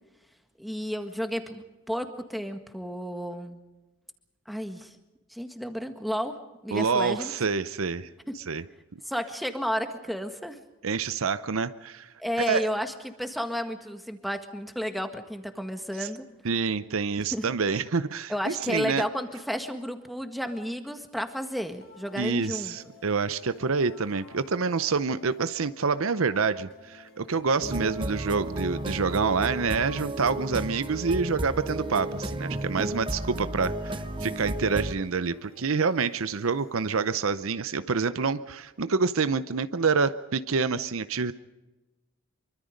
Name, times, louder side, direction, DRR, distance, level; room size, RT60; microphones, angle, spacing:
voice 1, 0.6-3.6 4.5-5.0 5.3-6.4 6.6-7.3 8.3-8.4 9.1-10.6 12.2-16.2 17.3-17.4 18.3-22.8, equal, ahead, 6 dB, 1.6 m, -32 dB
voice 2, 6.7-8.1 8.3-8.6 8.9-9.0 10.8-12.7 16.0-16.1 16.4-19.0 22.2-41.3, right 5 dB, 70° right, 13 dB, 0.7 m, -27 dB
sound 1, 21.8-37.8, left 2 dB, 60° left, 3.5 m, -53 dB
sound 2, 27.6-34.9, right 1 dB, 20° right, 1.1 m, -33 dB
25.5 x 24.0 x 5.2 m, 1.1 s
head